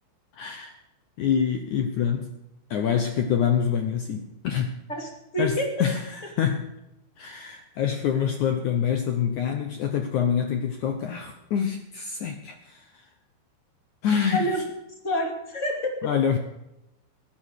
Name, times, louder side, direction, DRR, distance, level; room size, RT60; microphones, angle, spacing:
voice 1, 0.3-0.8 1.2-2.3 2.7-4.8 5.4-6.6 7.2-13.0 14.0-14.5 16.0-16.4, left 8 dB, 70° left, 6 dB, 1.8 m, -26 dB
voice 2, 4.9-5.9 14.3-14.6 15.0-16.1, equal, 25° left, 3 dB, 2.0 m, -28 dB
15.5 x 11.5 x 6.6 m, 0.91 s
omnidirectional pair, 4.7 m